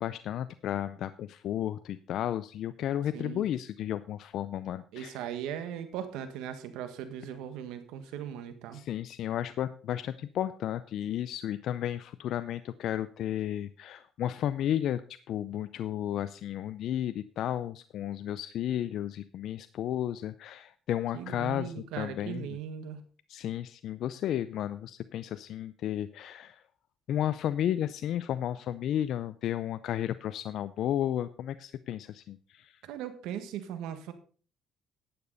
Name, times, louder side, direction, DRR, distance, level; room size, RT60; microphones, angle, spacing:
voice 1, 0.0-5.2 8.7-22.6 23.3-26.6 27.1-32.8, left 11 dB, 70° left, 13 dB, 0.5 m, -33 dB
voice 2, 3.1-3.4 4.9-8.9 21.1-23.0 32.8-34.1, right 9 dB, 85° right, 10 dB, 1.5 m, -38 dB
12.0 x 8.8 x 4.0 m, 0.41 s
cardioid pair, 95°, 0 cm